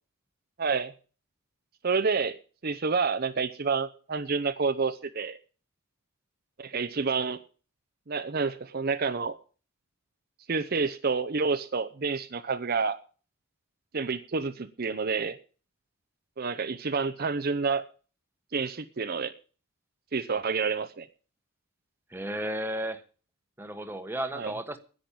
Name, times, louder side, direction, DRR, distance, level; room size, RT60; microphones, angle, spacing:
voice 1, 0.6-0.9 1.8-2.4 2.6-5.4 6.6-7.4 8.1-9.3 10.5-13.0 13.9-15.4 16.4-17.8 18.5-19.3 20.1-21.1 24.3-24.5, right 4 dB, 45° right, 0.7 m, -28 dB
voice 2, 22.1-23.0 23.6-24.8, right 1 dB, 10° right, 1.2 m, -33 dB
10.5 x 9.6 x 8.5 m
head